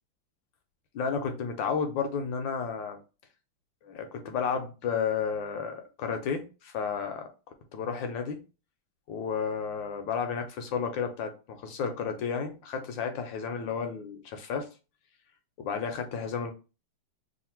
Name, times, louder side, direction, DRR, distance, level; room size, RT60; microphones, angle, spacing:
voice 1, 0.9-3.0 3.8-7.3 7.7-8.4 9.1-14.7 15.6-16.5, left 6 dB, 75° left, 1.2 m, -32 dB
3.2 x 2.5 x 4.3 m
omnidirectional pair, 2.3 m